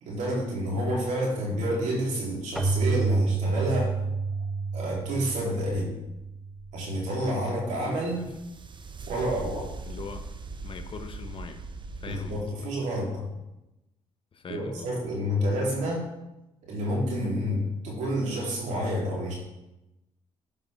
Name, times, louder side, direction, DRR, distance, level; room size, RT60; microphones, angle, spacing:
voice 1, 0.0-4.0 4.7-5.9 6.7-8.3 9.1-9.7 12.0-13.3 14.5-16.0 16.6-19.3, equal, 70° right, -4 dB, 3.3 m, -29 dB
Keyboard (musical), 2.6-7.1, right 4 dB, ahead, 1.0 m, -29 dB
voice 2, 7.7-8.2 9.9-10.3 10.6-11.6 12.0-12.5 14.3-15.0, left 5 dB, 45° left, 7 dB, 1.1 m, -41 dB
sound 1, 7.8-12.4, right 3 dB, 40° right, 0.8 m, -40 dB
11.5 x 5.2 x 3.5 m, 0.94 s
supercardioid pair, 65°, 13 cm